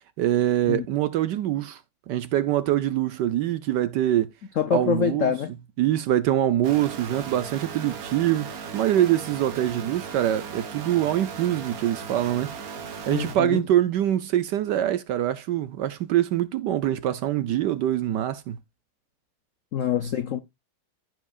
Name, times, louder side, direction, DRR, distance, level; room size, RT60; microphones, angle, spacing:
voice 1, 0.2-1.8 2.1-4.3 4.7-5.3 5.8-12.5 13.1-18.6, right 12 dB, 70° right, 1.1 m, -24 dB
voice 2, 4.6-5.5 13.1-13.6 19.7-20.4, left 7 dB, 80° left, 0.7 m, -25 dB
sound 1, 6.6-13.4, right 5 dB, 50° right, 1.4 m, -37 dB
14.5 x 4.9 x 2.3 m
omnidirectional pair, 2.3 m